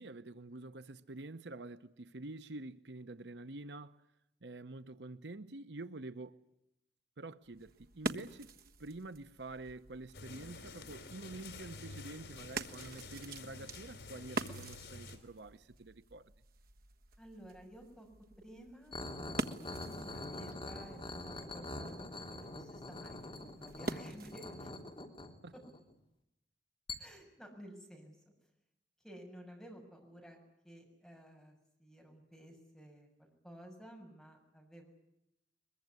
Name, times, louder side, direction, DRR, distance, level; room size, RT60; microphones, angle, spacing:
voice 1, 0.0-4.0 4.4-6.4 7.2-16.3 25.4-25.5, right 2 dB, 75° right, 0.9 m, -48 dB
sound 1, 7.4-24.6, right 2 dB, 55° right, 1.5 m, -46 dB
sound 2, 10.1-15.2, left 3 dB, 75° left, 4.1 m, -49 dB
voice 2, 17.2-18.1 18.4-24.7 25.5-25.6 27.0-28.3 29.0-34.9, equal, ahead, 6.8 m, -53 dB
sound 3, 18.9-25.9 26.9-27.0, left 2 dB, 30° left, 3.1 m, -44 dB
22.5 x 22.5 x 9.6 m
head